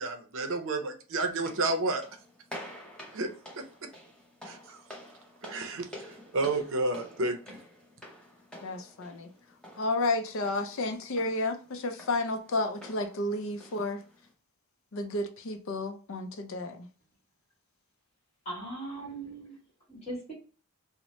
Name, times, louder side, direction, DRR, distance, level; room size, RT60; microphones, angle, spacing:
voice 1, 0.0-2.0 3.1-3.3 3.6-3.7 4.4-4.8 5.4-7.6, right 2 dB, 60° right, 0.6 m, -31 dB
sound 1, 1.3-14.3, equal, 5° left, 0.8 m, -49 dB
voice 2, 8.6-9.3 9.8-14.0 14.9-16.9, left 2 dB, 60° left, 0.5 m, -31 dB
voice 3, 18.4-19.6 19.9-20.3, right 2 dB, 30° left, 1.4 m, -39 dB
2.8 x 2.1 x 3.0 m
head